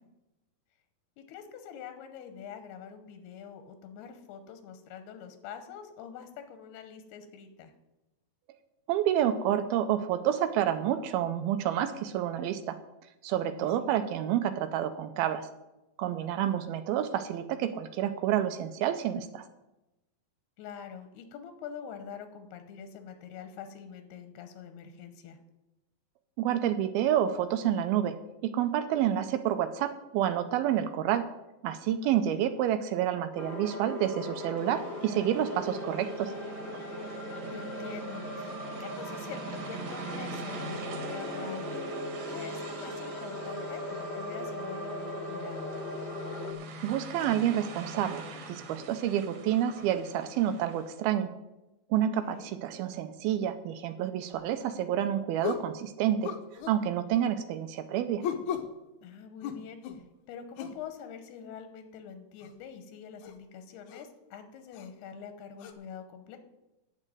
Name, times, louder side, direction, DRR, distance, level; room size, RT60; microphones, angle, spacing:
voice 1, 1.2-7.7 13.6-13.9 16.2-16.7 20.6-25.4 32.0-32.4 37.5-41.9 42.3-45.7 52.0-52.5 59.0-66.4, left 7 dB, 90° left, 8 dB, 3.0 m, -45 dB
voice 2, 8.9-12.8 13.2-15.5 16.0-19.4 26.4-28.2 28.4-31.3 31.6-36.3 46.8-51.3 51.9-56.3 56.7-58.2, right 10 dB, 85° right, 9 dB, 2.5 m, -29 dB
sound 1, 33.4-46.5, left 1 dB, 50° left, 0.7 m, -39 dB
sound 2, 34.6-51.0, right 2 dB, 60° right, 2.6 m, -43 dB
sound 3, 54.3-54.5 55.4-55.7 56.2-56.8 58.2-58.7 59.4-60.0 60.6-60.8 62.4-62.5 63.2-63.4 63.9-64.0 64.7-64.9 65.6-65.7, left 7 dB, 75° left, 1.9 m, -35 dB
9.2 x 7.5 x 9.1 m, 0.97 s
omnidirectional pair, 4.5 m